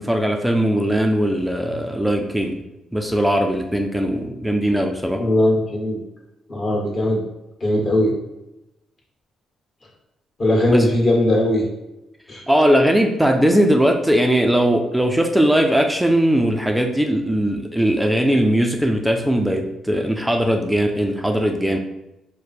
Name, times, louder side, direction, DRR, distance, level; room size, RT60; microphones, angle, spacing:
voice 1, 0.0-2.6 2.9-5.2 10.7-10.8 12.5-21.8, equal, 5° right, 3 dB, 0.5 m, -19 dB
voice 2, 5.1-6.0 6.5-7.2 7.6-8.1 10.4-11.7 12.3-12.4, left 1 dB, 35° left, -3 dB, 1.6 m, -19 dB
4.9 x 2.2 x 4.2 m, 0.91 s
cardioid pair, 90°, 0 cm